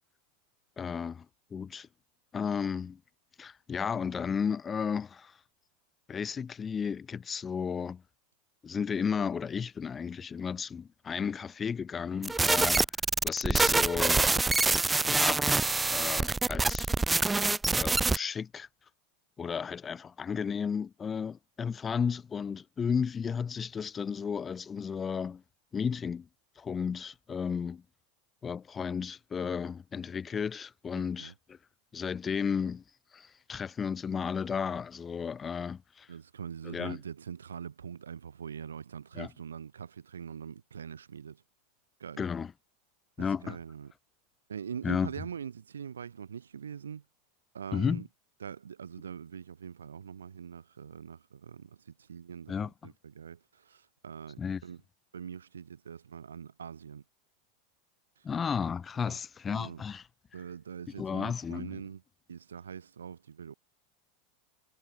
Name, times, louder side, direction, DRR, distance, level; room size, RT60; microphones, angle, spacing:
voice 1, 0.8-1.3 1.5-1.9 2.3-3.0 3.4-5.4 6.1-8.0 8.6-12.8 13.2-14.3 15.0-15.5 15.9-16.9 17.7-18.7 19.4-25.4 25.7-26.3 26.6-27.8 28.4-31.6 31.9-32.8 33.1-36.1 36.6-37.0 39.1-39.3 42.2-42.5 43.2-43.6 44.8-45.1 47.7-48.0 52.5-52.7 54.4-54.6 58.2-60.1 61.0-61.8, left 6 dB, 25° left, 0.7 m, -33 dB
sound 1, 12.2-18.2, right 3 dB, 10° right, 0.8 m, -26 dB
voice 2, 30.9-31.3 36.1-41.4 42.0-42.3 43.4-43.9 44.5-47.0 47.5-48.1 48.4-54.8 55.1-57.0 59.0-59.2 59.5-59.8 60.3-62.0 62.3-63.5, right 7 dB, 75° right, 4.2 m, -43 dB
figure-of-eight pair, 85°, 0 cm